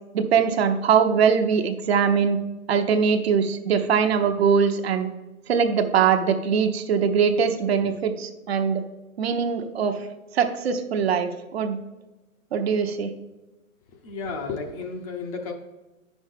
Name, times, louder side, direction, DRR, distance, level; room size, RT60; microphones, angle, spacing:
voice 1, 0.1-2.4 2.7-5.1 5.5-8.8 9.2-10.1 10.3-11.8 12.5-13.1, right 6 dB, 50° right, 6 dB, 0.8 m, -22 dB
voice 2, 14.0-15.5, left 4 dB, 25° left, 4 dB, 0.7 m, -32 dB
9.2 x 6.2 x 3.5 m, 1.1 s
hypercardioid pair, 135°, 41 cm